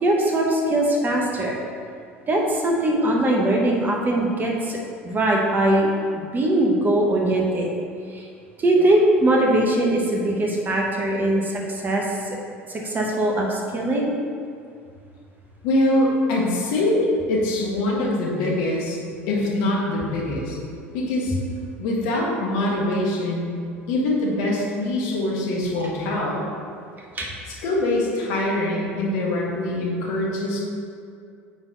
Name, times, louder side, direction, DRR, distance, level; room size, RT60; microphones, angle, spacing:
voice 1, 0.0-1.6 2.3-4.8 5.0-5.9 6.3-7.7 8.1-8.2 8.6-12.0 12.7-14.1 27.1-27.3, right 1 dB, 25° right, -1 dB, 1.4 m, -21 dB
voice 2, 15.6-19.0 19.3-20.6 20.9-21.3 21.8-23.5 23.9-26.4 27.6-30.6, left 1 dB, 55° left, -3 dB, 1.7 m, -23 dB
8.7 x 4.1 x 4.0 m, 2.3 s
figure-of-eight pair, 70°, 7 cm